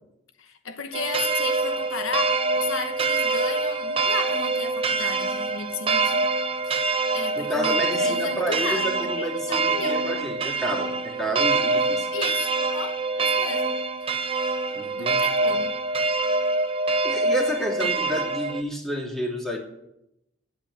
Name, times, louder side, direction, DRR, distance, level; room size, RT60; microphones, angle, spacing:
voice 1, 0.4-6.3 6.6-6.9 7.1-10.1 12.1-14.1 14.9-15.8, left 5 dB, 85° left, 1.0 m, -34 dB
sound 1, 0.9-18.6, right 3 dB, 25° right, 0.6 m, -25 dB
voice 2, 7.4-12.1 14.7-15.2 17.0-19.6, equal, ahead, 2.6 m, -30 dB
10.5 x 8.2 x 9.9 m
head